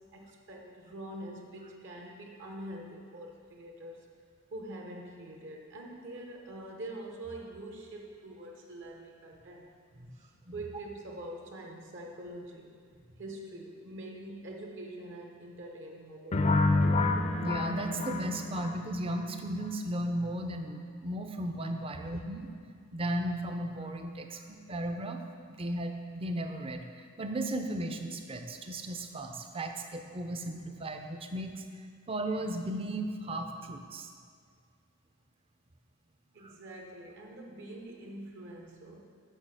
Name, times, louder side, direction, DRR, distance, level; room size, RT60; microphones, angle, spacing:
voice 1, 0.1-4.1 4.5-9.7 10.1-12.8 13.2-16.6 21.9-22.2 36.3-39.0, right 1 dB, 60° right, 0 dB, 1.0 m, -44 dB
sound 1, 16.3-19.2, left 2 dB, 30° left, 0.4 m, -28 dB
voice 2, 17.4-22.5 22.9-25.2 25.5-31.6 32.1-34.1 36.4-36.5, right 1 dB, 25° right, 5 dB, 0.5 m, -35 dB
6.4 x 5.9 x 6.4 m, 2.1 s
head